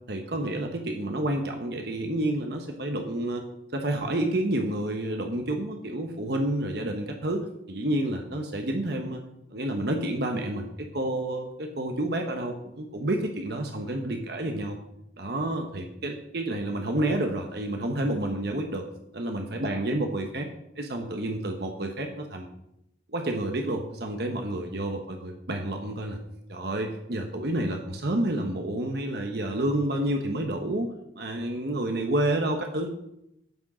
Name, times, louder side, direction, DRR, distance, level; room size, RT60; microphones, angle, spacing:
voice 1, 0.1-3.4 3.7-9.2 9.5-10.7 10.9-14.8 15.2-18.8 19.1-20.4 20.8-22.5 23.1-26.2 26.5-30.9 31.1-32.9, right 1 dB, 60° right, 4 dB, 1.1 m, -29 dB
9.0 x 6.2 x 6.3 m, 0.80 s
head